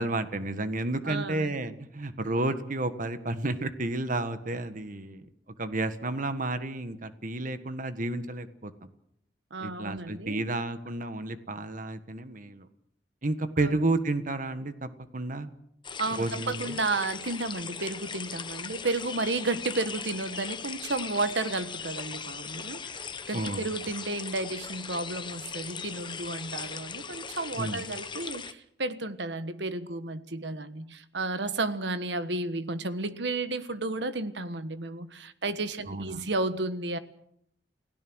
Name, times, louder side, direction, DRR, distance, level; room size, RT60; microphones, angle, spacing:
voice 1, 0.0-5.3 5.6-8.7 9.6-12.7 13.2-15.5 16.1-16.8 23.3-23.6 27.6-27.8 35.9-36.3, right 2 dB, 45° right, 10 dB, 1.5 m, -31 dB
voice 2, 1.0-1.6 9.5-10.4 13.6-13.8 16.0-37.0, right 2 dB, 70° right, 11 dB, 1.4 m, -32 dB
sound 1, 15.8-28.5, left 6 dB, 25° left, 1.0 m, -39 dB
30.0 x 17.0 x 6.3 m, 0.73 s
head